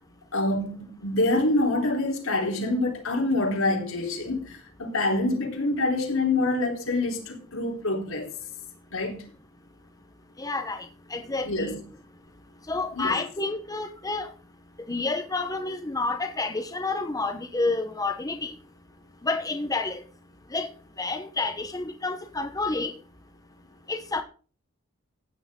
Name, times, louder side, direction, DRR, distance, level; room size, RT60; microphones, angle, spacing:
voice 1, 0.3-8.3 8.9-9.2 11.5-11.8 12.9-13.2, left 2 dB, 85° left, 4.0 m, -26 dB
voice 2, 10.4-11.7 12.7-14.3 14.9-18.5 19.2-20.0 20.5-20.7 21.0-22.9 23.9-24.2, left 3 dB, 20° left, 1.1 m, -29 dB
15.5 x 9.9 x 3.8 m
head